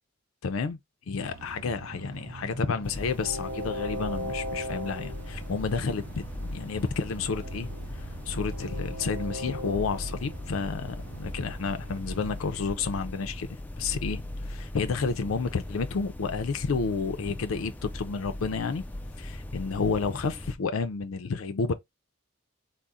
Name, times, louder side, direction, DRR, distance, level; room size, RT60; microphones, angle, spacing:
voice 1, 0.4-0.8 1.1-7.7 8.3-13.5 13.8-18.8 19.2-21.7, left 5 dB, 75° left, 0.5 m, -30 dB
Train, 1.2-12.5, right 1 dB, 70° right, 0.8 m, -40 dB
sound 1, 2.8-20.5, left 1 dB, 10° left, 0.3 m, -39 dB
3.6 x 2.1 x 4.0 m
head